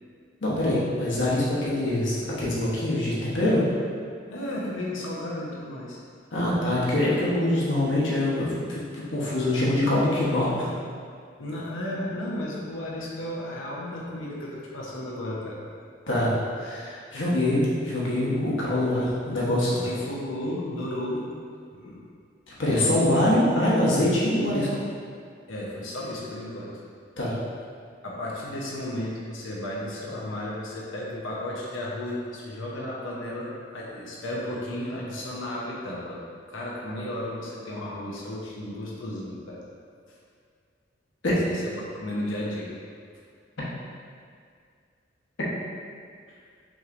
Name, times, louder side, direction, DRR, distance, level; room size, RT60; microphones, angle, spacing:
voice 1, 0.4-3.6 6.3-10.7 16.1-19.9 22.6-24.7 27.2-27.4 41.2-41.4, left 1 dB, 70° left, -7 dB, 1.1 m, -24 dB
voice 2, 4.3-6.0 11.4-15.7 19.8-21.3 21.7-22.0 22.7-23.7 25.5-26.7 28.0-36.2 36.5-39.6 41.4-42.7 46.3-46.4, left 1 dB, 90° left, -5 dB, 0.8 m, -34 dB
6.1 x 3.1 x 2.6 m, 2.2 s
head